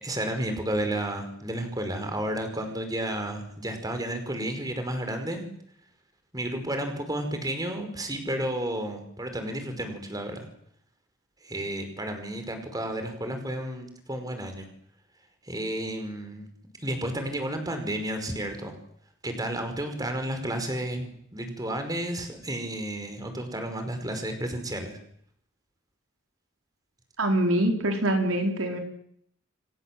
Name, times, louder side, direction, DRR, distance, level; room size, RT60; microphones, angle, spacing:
voice 1, 0.0-5.5 6.3-10.5 11.4-14.7 15.5-16.5 16.8-18.7 19.2-25.0, right 1 dB, 20° right, 6 dB, 5.2 m, -32 dB
voice 2, 27.2-28.8, right 1 dB, 85° right, 4 dB, 4.7 m, -24 dB
29.5 x 24.0 x 7.9 m, 0.70 s
head